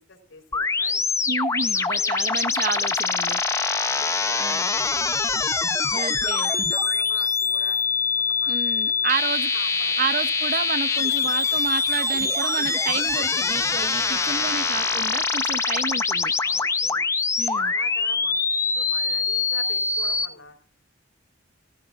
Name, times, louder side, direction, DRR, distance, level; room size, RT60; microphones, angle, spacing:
voice 1, 0.0-1.1 1.7-2.2 2.6-2.8 3.4-5.0 6.0-7.8 8.3-9.3 9.5-10.0 14.1-14.9 16.4-17.1 17.5-20.6, left 3 dB, 85° left, 4.1 m, -44 dB
sound 1, 0.5-20.3, left 4 dB, 15° left, 0.5 m, -24 dB
voice 2, 1.3-3.4 4.4-4.7 5.9-6.5 8.5-9.5 10.0-16.3 17.4-17.7, right 5 dB, 45° right, 0.6 m, -30 dB
18.5 x 14.0 x 2.4 m
head